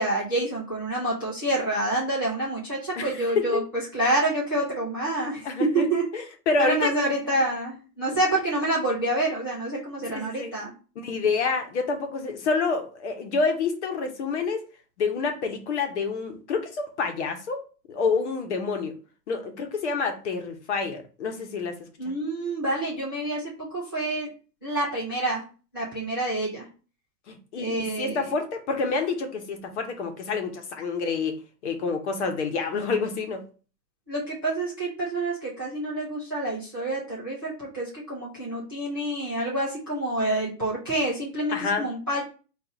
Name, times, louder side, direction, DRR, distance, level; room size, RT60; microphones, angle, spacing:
voice 1, 0.0-3.6 3.9-6.1 6.6-10.7 22.0-24.3 24.6-25.4 25.7-26.7 27.6-28.3 34.1-42.2, right 1 dB, 15° right, -8 dB, 0.4 m, -27 dB
voice 2, 3.0-3.6 5.4-5.9 6.1-6.9 10.1-10.5 11.0-14.6 15.0-17.6 17.9-19.0 19.3-21.8 22.0-22.1 27.3-31.4 31.6-33.4 41.5-41.9, left 4 dB, 45° left, 5 dB, 1.0 m, -28 dB
4.6 x 2.6 x 4.0 m, 0.36 s
hypercardioid pair, 160°, 50 cm